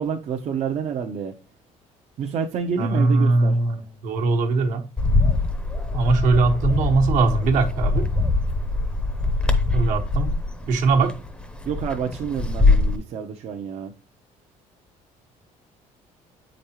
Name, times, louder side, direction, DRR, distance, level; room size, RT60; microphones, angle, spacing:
voice 1, 0.0-1.3 2.2-3.6 11.6-13.9, right 6 dB, 50° right, 0.7 m, -28 dB
voice 2, 2.8-4.9 5.9-8.0 9.7-10.3 10.7-11.1, right 3 dB, 70° right, 1.3 m, -20 dB
Bird, 5.0-13.0, left 3 dB, 5° left, 0.7 m, -23 dB
7.7 x 5.2 x 2.9 m
cardioid pair, 150°, 14 cm